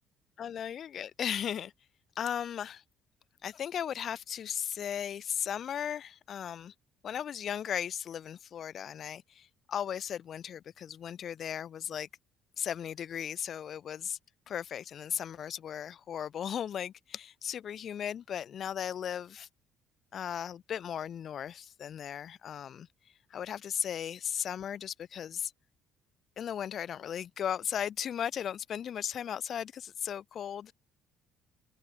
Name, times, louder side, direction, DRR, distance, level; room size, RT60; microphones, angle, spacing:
voice 1, 0.4-1.7 2.2-2.8 3.4-6.7 7.0-12.1 12.6-14.2 14.5-19.5 20.1-22.9 23.3-25.5 26.4-30.7, left 9 dB, 50° left, 1.1 m, -36 dB
cardioid pair, 115°, 0 cm